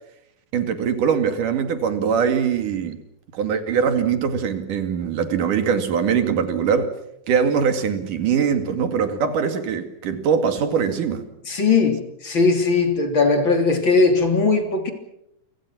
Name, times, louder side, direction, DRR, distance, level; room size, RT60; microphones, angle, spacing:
voice 1, 0.5-3.0 3.3-6.9 7.3-11.2, right 7 dB, 90° right, 8 dB, 3.9 m, -22 dB
voice 2, 11.5-14.9, left 4 dB, 40° left, 5 dB, 3.9 m, -19 dB
29.0 x 25.5 x 6.2 m, 0.79 s
omnidirectional pair, 3.6 m